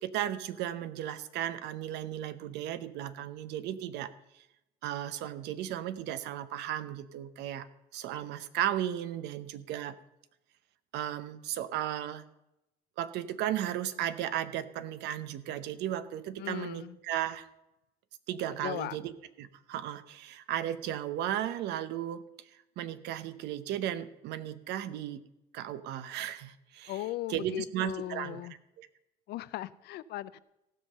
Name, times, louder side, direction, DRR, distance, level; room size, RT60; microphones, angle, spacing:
voice 1, 0.0-4.4 4.8-7.7 7.9-10.0 10.9-12.2 13.0-17.5 18.3-19.1 19.4-22.2 22.8-25.2 25.5-27.0 27.3-28.4 28.8-28.9, right 11 dB, 85° right, 13 dB, 0.8 m, -35 dB
voice 2, 16.4-17.0 18.5-19.0 26.9-28.5 29.3-30.4, left 14 dB, 75° left, 17 dB, 0.5 m, -38 dB
16.0 x 5.6 x 6.7 m, 0.90 s
cardioid pair, 110°, 17 cm